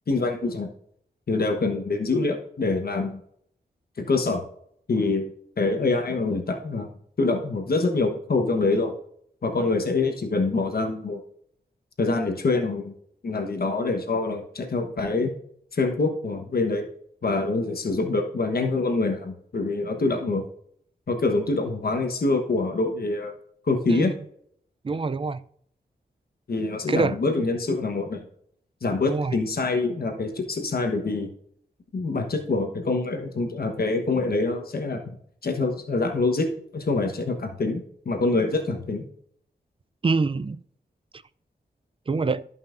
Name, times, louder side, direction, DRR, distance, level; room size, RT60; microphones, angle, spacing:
voice 1, 0.1-0.7 1.3-3.2 4.0-4.4 4.9-5.3 5.6-6.9 7.2-8.9 9.4-11.2 12.0-12.9 13.2-15.3 15.7-16.8 17.2-20.5 21.1-23.3 23.6-24.1 26.5-28.2 28.8-31.3 31.9-35.0 35.4-39.0, left 3 dB, 60° left, 1.2 m, -25 dB
voice 2, 24.8-25.4 26.9-27.2 29.1-29.4 40.0-40.6 42.1-42.5, right 4 dB, 30° right, 0.4 m, -25 dB
14.0 x 5.6 x 2.6 m
cardioid pair, 65°, 17 cm